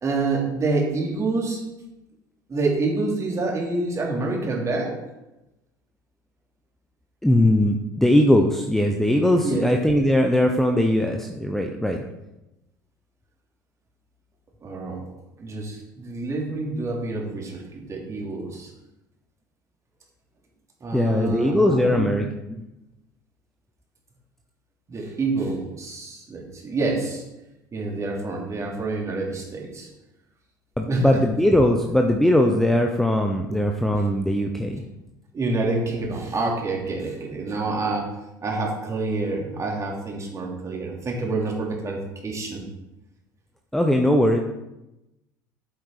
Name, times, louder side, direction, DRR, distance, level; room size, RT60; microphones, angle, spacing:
voice 1, 0.0-1.6 2.5-5.0 9.4-9.7 14.6-15.0 15.4-18.7 20.8-22.1 24.9-27.2 27.7-29.9 30.9-31.2 35.3-38.1 38.4-42.6, right 3 dB, 30° right, -1 dB, 3.2 m, -27 dB
voice 2, 7.2-12.0 20.9-22.6 30.8-34.8 43.7-44.4, left 1 dB, 5° left, 3 dB, 0.9 m, -20 dB
8.8 x 7.8 x 4.9 m, 0.95 s
figure-of-eight pair, 65°, 10 cm